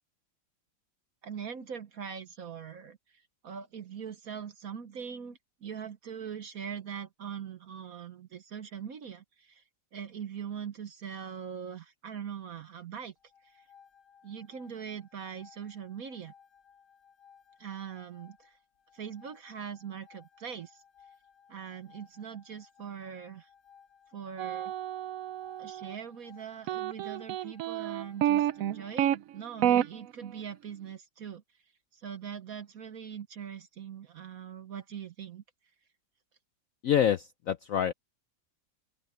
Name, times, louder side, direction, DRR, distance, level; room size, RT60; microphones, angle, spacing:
voice 1, 1.2-9.6 9.9-13.1 13.4-13.7 14.2-16.3 17.6-18.6 18.9-20.8 21.5-23.5 24.1-24.7 25.6-31.4 31.9-35.4, right 7 dB, 55° right, 1.2 m, -42 dB
sound 1, 13.2-29.0, left 7 dB, 60° left, 2.4 m, -60 dB
sound 2, 24.4-25.9 26.7-29.2 29.6-29.8, right 11 dB, 85° right, 0.7 m, -29 dB
voice 2, 36.8-37.9, left 9 dB, 80° left, 0.7 m, -26 dB
omnidirectional pair, 2.1 m